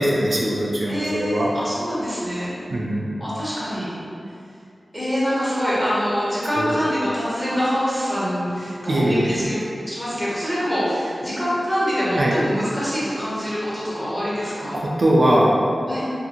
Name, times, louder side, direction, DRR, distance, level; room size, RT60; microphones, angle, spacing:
voice 1, 0.0-1.5 2.7-3.1 6.6-6.8 8.9-9.5 12.1-12.4 14.7-15.5, right 1 dB, 70° right, -4 dB, 0.4 m, -20 dB
voice 2, 0.9-2.5 3.2-3.9 4.9-9.6 9.9-14.8 15.9-16.0, equal, 5° left, -10 dB, 1.1 m, -25 dB
2.6 x 2.5 x 2.8 m, 2.5 s
wide cardioid pair, 55°, 0 cm